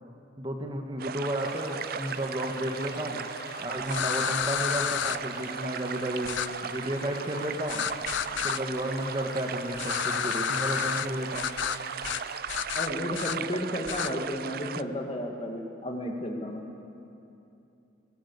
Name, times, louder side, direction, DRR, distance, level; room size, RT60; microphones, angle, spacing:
voice 1, 0.4-3.2 3.6-6.3 6.6-7.9 8.4-11.5, right 1 dB, 25° right, 2 dB, 1.6 m, -32 dB
sound 1, 1.0-14.8, right 7 dB, 50° right, 0.4 m, -37 dB
sound 2, 1.4-12.4, left 3 dB, 50° left, 2.2 m, -46 dB
sound 3, 3.9-5.2 6.3-6.5 7.7-8.6 9.8-11.1 11.4-11.8 12.0-12.2 12.5-13.4 13.9-14.1, left 9 dB, 65° left, 0.5 m, -30 dB
voice 2, 12.7-16.6, left 1 dB, 30° left, 2 dB, 2.1 m, -33 dB
22.0 x 18.0 x 8.4 m, 2.8 s
head